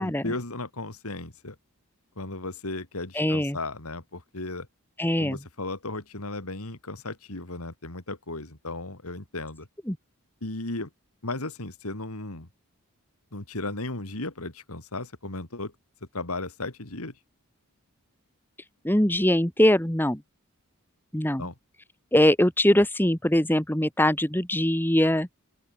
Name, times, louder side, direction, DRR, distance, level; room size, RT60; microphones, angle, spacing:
voice 1, 0.0-1.6 2.2-4.7 5.2-9.7 10.4-10.9 11.2-12.5 13.3-15.7 16.1-17.2 21.4-21.5, left 2 dB, 80° left, 3.1 m, -35 dB
voice 2, 3.1-3.6 5.0-5.4 9.9-10.0 18.8-20.2 21.1-21.5 22.1-25.3, left 1 dB, 10° left, 1.5 m, -22 dB
open air
head